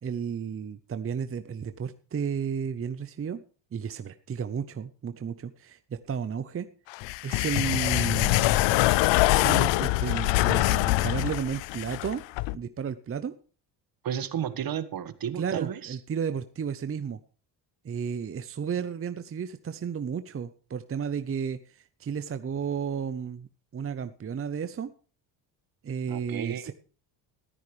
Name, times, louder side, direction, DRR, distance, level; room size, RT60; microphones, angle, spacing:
voice 1, 0.0-3.4 3.7-6.7 7.2-8.6 9.2-12.2 12.5-13.3 15.3-17.2 17.8-24.9 25.8-26.7, right 7 dB, 30° right, 11 dB, 0.8 m, -33 dB
sound 1, 6.9-12.6, left 18 dB, 85° left, 0.6 m, -24 dB
voice 2, 14.0-16.0 26.1-26.7, right 9 dB, 55° right, 13 dB, 1.5 m, -33 dB
15.0 x 13.0 x 3.3 m, 0.39 s
cardioid pair, 95°, 43 cm